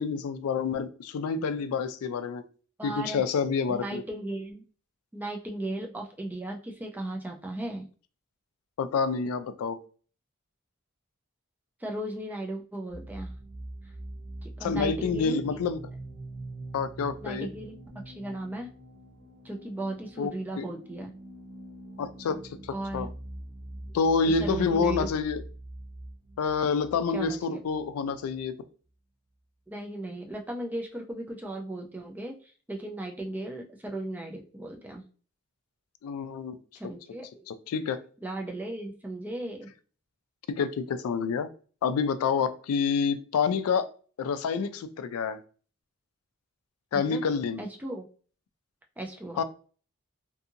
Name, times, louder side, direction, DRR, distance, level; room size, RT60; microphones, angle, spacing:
voice 1, 0.0-2.4 2.8-4.0 8.8-9.8 14.6-15.8 16.7-17.5 20.2-20.7 22.0-23.1 23.9-25.4 26.4-28.5 36.0-36.6 37.5-38.0 40.5-41.5 41.8-43.9 44.2-45.4 46.9-47.6 49.4-49.5, left 5 dB, 85° left, 13 dB, 0.3 m, -28 dB
voice 2, 2.8-3.2 3.7-4.6 5.1-7.8 11.8-13.3 14.4-15.6 17.2-17.8 18.1-18.7 19.4-21.1 22.7-23.1 23.8-23.9 24.2-25.1 27.1-27.6 29.7-35.0 36.8-37.4 38.2-39.7 46.9-47.2 47.6-48.1 49.0-49.4, right 1 dB, 10° right, 1 dB, 0.3 m, -36 dB
sound 1, 12.9-28.4, right 1 dB, 45° right, 0.7 m, -43 dB
2.6 x 2.5 x 2.6 m, 0.40 s
head